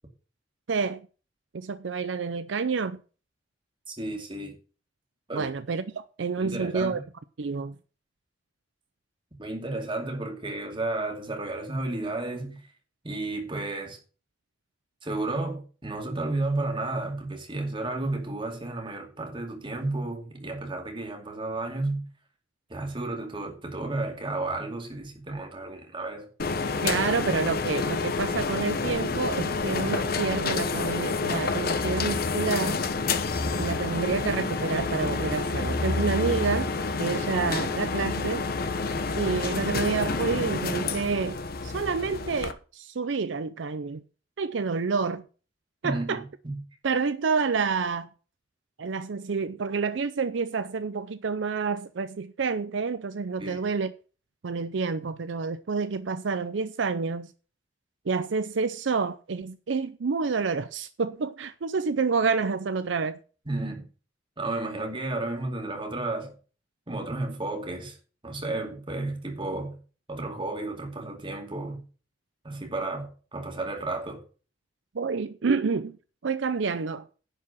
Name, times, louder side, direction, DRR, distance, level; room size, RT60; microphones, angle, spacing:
voice 1, 0.7-1.0 1.5-3.0 5.3-7.0 7.4-7.7 26.8-32.8 33.6-36.7 37.0-38.5 39.1-44.0 44.4-45.2 45.8-46.2 46.8-48.1 48.8-53.9 54.4-57.3 58.1-63.2 74.9-76.0 76.2-77.1, right 5 dB, 70° right, 0.5 m, -28 dB
voice 2, 3.9-4.6 5.3-5.5 6.4-7.0 9.4-12.6 13.0-14.0 15.0-22.0 22.7-26.3 45.8-46.6 53.4-53.6 63.5-63.8 64.4-66.4 66.9-68.0 68.2-69.8 70.1-71.8 72.4-74.2, right 2 dB, 25° right, 2.4 m, -32 dB
sound 1, 26.4-42.5, left 4 dB, 50° left, 0.9 m, -28 dB
10.5 x 4.8 x 7.2 m
head